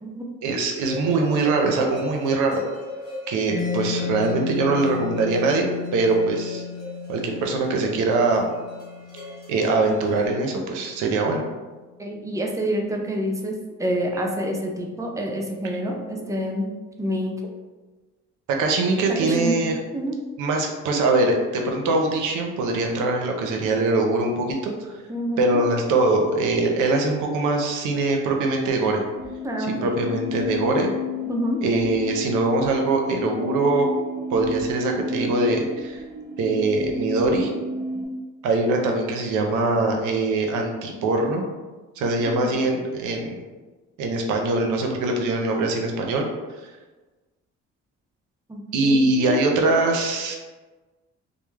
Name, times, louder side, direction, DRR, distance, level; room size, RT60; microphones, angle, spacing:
voice 1, 0.4-2.6 3.3-5.7 5.9-6.6 7.1-8.5 9.5-11.4 18.5-19.8 20.4-24.7 25.4-29.0 29.8-30.9 31.6-33.9 34.3-36.0 36.4-37.5 38.4-41.4 42.0-43.4 44.0-46.2 48.7-50.4, right 2 dB, 90° right, 2 dB, 0.5 m, -22 dB
sound 1, 0.8-10.3, left 1 dB, 15° left, 1.0 m, -38 dB
Mallet percussion, 3.5-11.0, left 7 dB, 65° left, 0.5 m, -34 dB
voice 2, 12.0-13.5 13.8-16.7 17.0-17.5 19.1-19.6 19.9-20.1 25.1-25.6 29.4-30.0 31.3-31.6 42.3-42.6 48.5-49.4, right 1 dB, 10° right, 0 dB, 0.4 m, -27 dB
sound 2, 29.1-38.1, left 3 dB, 40° right, 0.7 m, -32 dB
2.2 x 2.0 x 3.1 m, 1.3 s
cardioid pair, 90°, 30 cm